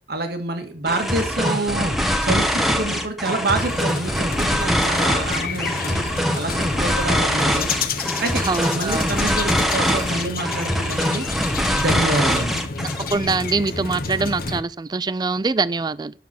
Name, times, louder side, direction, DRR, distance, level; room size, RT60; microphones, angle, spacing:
voice 1, 0.1-1.9 2.2-6.0 6.4-7.7 8.2-8.4 8.7-11.3 11.7-12.6, right 2 dB, 65° right, 1.9 m, -27 dB
sound 1, 0.9-13.1, equal, ahead, 1.1 m, -23 dB
sound 2, 3.5-14.6, left 4 dB, 55° left, 1.1 m, -30 dB
voice 2, 8.5-9.1 13.1-16.1, right 4 dB, 25° right, 0.4 m, -23 dB
9.4 x 6.8 x 6.0 m
head